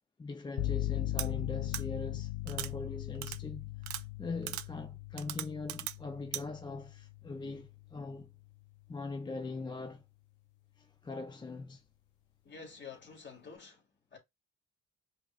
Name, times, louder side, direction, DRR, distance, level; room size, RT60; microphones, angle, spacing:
voice 1, 0.2-8.3 8.9-10.0 10.8-11.8, left 3 dB, 15° left, 0.3 m, -42 dB
sound 1, 0.6-8.3, left 15 dB, 75° left, 0.7 m, -39 dB
sound 2, 1.2-1.3 1.7-1.8 2.5-2.7 3.2-3.4 3.8-4.0 4.5-4.7 5.2-6.0 6.3-6.4, right 14 dB, 70° right, 0.5 m, -38 dB
voice 2, 12.4-14.2, left 5 dB, 35° left, 1.9 m, -49 dB
5.0 x 3.0 x 2.3 m
cardioid pair, 90°, 30 cm